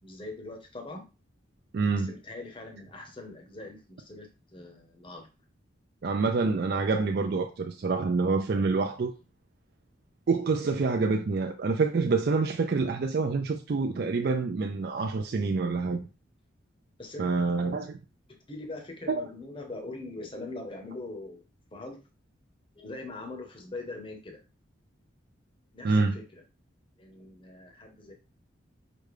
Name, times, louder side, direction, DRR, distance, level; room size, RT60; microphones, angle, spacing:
voice 1, 0.0-1.0 1.9-5.3 17.0-17.4 18.3-21.4 21.7-22.0 22.8-24.4 25.7-26.4 27.0-28.1, left 2 dB, 25° left, 0.8 m, -42 dB
voice 2, 1.7-2.1 6.0-9.1 10.3-16.0 17.2-18.0 19.1-19.2 25.8-26.1, right 4 dB, 50° right, 0.3 m, -27 dB
5.0 x 2.2 x 4.8 m
head